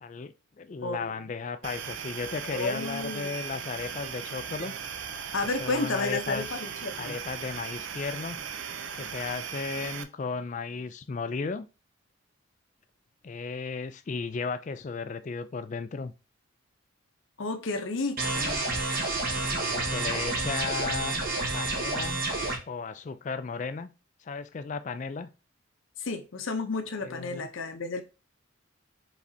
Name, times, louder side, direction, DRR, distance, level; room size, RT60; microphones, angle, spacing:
voice 1, 0.0-4.7 5.4-6.6 7.0-8.4 8.9-11.7 13.2-16.1 19.5-21.1 21.5-22.2 22.7-23.9 24.2-25.3 27.0-27.5, left 4 dB, 35° left, 0.3 m, -35 dB
sound 1, 1.6-10.0, right 7 dB, 65° right, 0.4 m, -38 dB
voice 2, 2.5-3.3 5.3-7.2 17.4-18.7 26.0-28.0, left 3 dB, 70° left, 0.7 m, -32 dB
sound 2, 18.2-22.6, right 2 dB, 45° right, 1.1 m, -29 dB
4.9 x 3.3 x 2.7 m
head